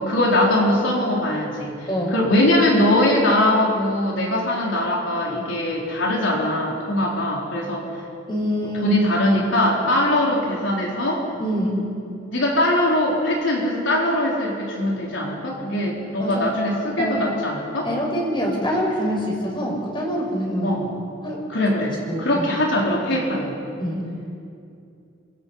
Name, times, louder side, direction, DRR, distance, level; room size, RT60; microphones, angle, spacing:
voice 1, 0.0-7.8 8.8-11.3 12.3-17.9 20.6-20.8 21.5-23.5, left 1 dB, 75° left, -2 dB, 4.2 m, -21 dB
voice 2, 8.3-9.0 11.4-11.8 16.2-16.5 17.0-17.2 17.8-20.8 21.2-21.4 22.1-22.5 23.8-24.0, equal, 25° left, -1 dB, 6.2 m, -25 dB
29.5 x 26.5 x 5.7 m, 2.6 s
head